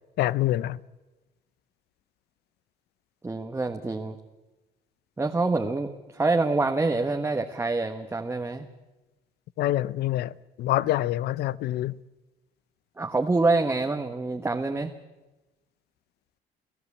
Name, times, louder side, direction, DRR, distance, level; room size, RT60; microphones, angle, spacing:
voice 1, 0.2-0.8 9.6-10.3 10.6-12.0, left 14 dB, 75° left, 0.7 m, -26 dB
voice 2, 3.2-4.2 5.2-8.7 13.0-14.9, right 3 dB, 15° right, 1.3 m, -26 dB
29.5 x 16.5 x 8.5 m
cardioid pair, 110°, 17 cm